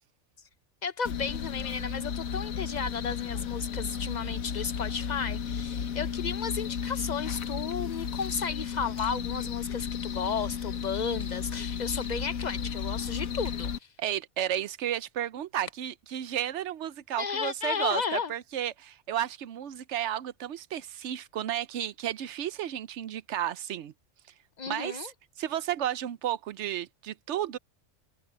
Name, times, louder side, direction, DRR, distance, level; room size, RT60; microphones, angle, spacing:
voice 1, 0.8-13.9 17.2-18.3 24.6-25.1, left 6 dB, 55° left, 0.4 m, -33 dB
sound 1, 1.0-13.8, left 7 dB, 75° left, 1.5 m, -34 dB
sound 2, 8.9-11.5 11.8-13.8, equal, 20° right, 5.6 m, -58 dB
voice 2, 14.0-23.9 24.7-25.1 25.4-27.6, right 11 dB, 65° right, 0.8 m, -33 dB
omnidirectional pair, 1.5 m